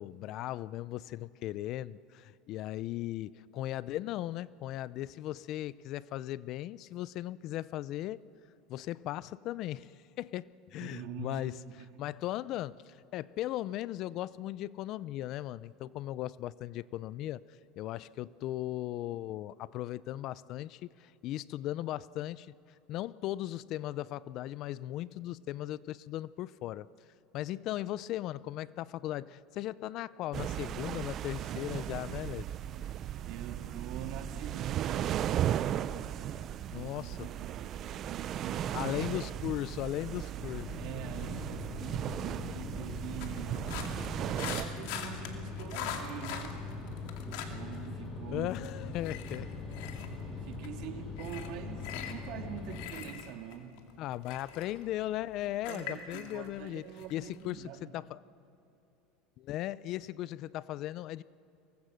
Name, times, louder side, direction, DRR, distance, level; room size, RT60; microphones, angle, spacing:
voice 1, 0.0-8.2 8.7-11.6 12.0-17.4 17.8-22.5 22.9-26.9 27.3-32.5 36.7-37.3 38.7-40.7 48.3-49.9 54.0-56.8 57.1-58.2 59.4-61.2, left 14 dB, 50° left, 19 dB, 0.5 m, -37 dB
voice 2, 10.8-11.9 33.3-35.5 36.7-37.8 38.1-38.9 40.8-43.7 44.3-46.6 47.2-49.0 50.4-53.8 55.7-57.9, right 9 dB, 65° right, 6 dB, 1.9 m, -44 dB
sound 1, 30.3-44.7, right 11 dB, 45° right, 0.6 m, -36 dB
sound 2, 40.4-52.9, left 3 dB, 30° left, 3.8 m, -42 dB
sound 3, 43.2-47.9 48.2-57.5, left 9 dB, 75° left, 2.4 m, -43 dB
23.5 x 19.5 x 6.5 m, 3.0 s
supercardioid pair, 125°, 0 cm